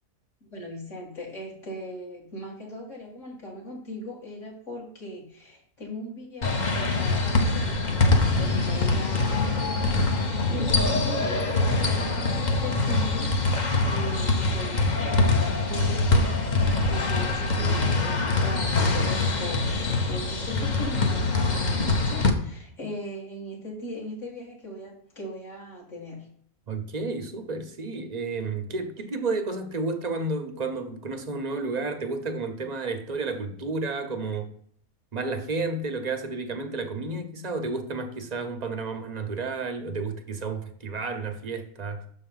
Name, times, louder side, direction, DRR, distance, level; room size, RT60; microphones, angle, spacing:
voice 1, 0.4-7.9 8.3-26.3, equal, 60° left, 2.5 m, -39 dB
sound 1, 6.4-22.3, left 3 dB, 40° left, 0.8 m, -24 dB
voice 2, 26.7-34.5 35.1-42.1, right 3 dB, 40° right, 0.6 m, -31 dB
6.5 x 4.4 x 5.4 m
omnidirectional pair, 1.5 m